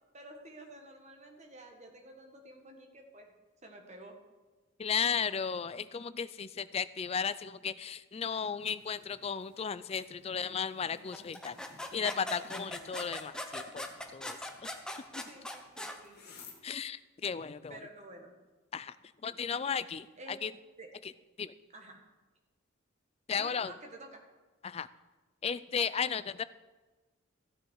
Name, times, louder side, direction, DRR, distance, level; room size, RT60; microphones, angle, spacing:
voice 1, 0.1-3.3 3.6-4.2 15.3-16.4 17.7-18.3 20.2-20.4 20.8-20.9 21.7-22.0 23.3-24.2, right 2 dB, 30° right, 2 dB, 1.7 m, -50 dB
voice 2, 4.8-11.6 11.9-13.9 14.1-14.7 15.2-15.3 16.6-17.8 18.7-19.0 19.2-20.5 21.4-21.5 23.3-23.7 24.6-24.9 25.4-26.4, left 6 dB, 30° left, 15 dB, 0.3 m, -35 dB
sound 1, 8.6-16.6, left 3 dB, 45° left, 2.1 m, -57 dB
sound 2, 11.1-16.0, left 1 dB, 5° left, 0.8 m, -40 dB
14.0 x 9.3 x 4.7 m, 1.2 s
head